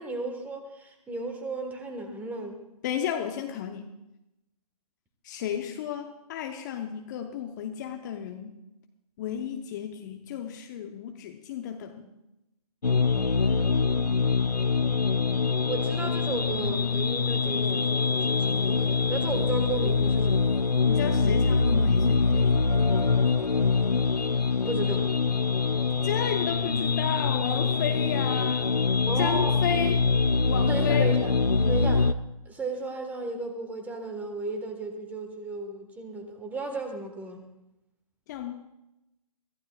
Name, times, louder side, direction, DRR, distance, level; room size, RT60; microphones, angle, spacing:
voice 1, 0.0-2.6 13.4-14.5 15.7-20.5 24.7-25.1 29.0-29.6 30.6-31.3 31.7-32.1 32.5-37.4, right 3 dB, 10° right, 5 dB, 1.3 m, -35 dB
voice 2, 2.8-3.9 5.2-8.5 9.2-12.1 20.9-22.6 26.0-28.8 29.2-30.1 30.5-31.2 38.3-38.5, left 9 dB, 30° left, 5 dB, 0.8 m, -33 dB
sound 1, 12.8-32.1, left 4 dB, 90° left, 0.6 m, -24 dB
23.5 x 14.5 x 2.3 m, 0.91 s
figure-of-eight pair, 135°, 20 cm